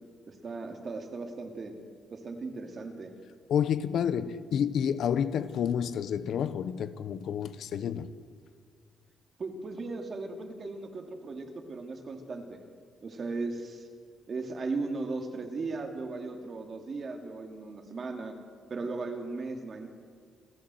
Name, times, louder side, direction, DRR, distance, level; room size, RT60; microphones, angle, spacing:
voice 1, 0.3-1.8 2.1-3.1 9.4-12.6 13.0-13.9 14.3-18.4 18.7-19.9, right 3 dB, 40° right, 2.7 m, -37 dB
voice 2, 3.5-8.1, left 8 dB, 65° left, 0.9 m, -29 dB
28.5 x 13.0 x 7.8 m
cardioid pair, 120°, 0 cm